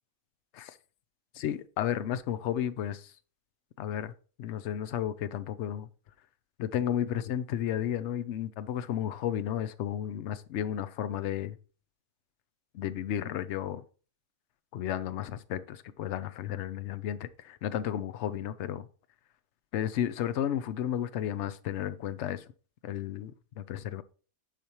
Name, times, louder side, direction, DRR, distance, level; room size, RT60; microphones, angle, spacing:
voice 1, 1.4-3.1 3.8-4.1 4.4-5.9 6.6-11.6 12.7-13.8 14.7-18.9 19.7-22.4 22.8-23.3 23.6-24.0, left 10 dB, 65° left, 0.8 m, -33 dB
10.0 x 5.1 x 2.9 m
omnidirectional pair, 1.4 m